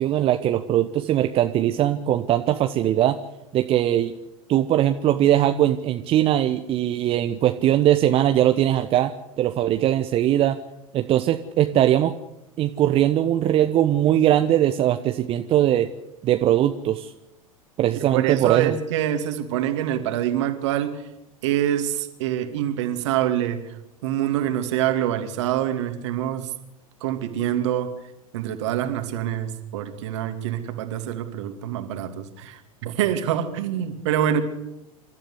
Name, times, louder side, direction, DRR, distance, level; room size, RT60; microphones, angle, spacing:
voice 1, 0.0-3.2 3.5-4.1 4.5-9.1 9.4-10.6 10.9-12.1 12.6-15.9 16.2-17.1 17.8-18.8, right 12 dB, 30° right, 8 dB, 1.1 m, -20 dB
voice 2, 18.0-21.0 21.4-23.8 24.0-26.5 27.0-27.9 28.3-34.4, right 11 dB, 55° right, 7 dB, 2.7 m, -25 dB
28.0 x 13.5 x 8.3 m, 0.92 s
figure-of-eight pair, 85°, 18 cm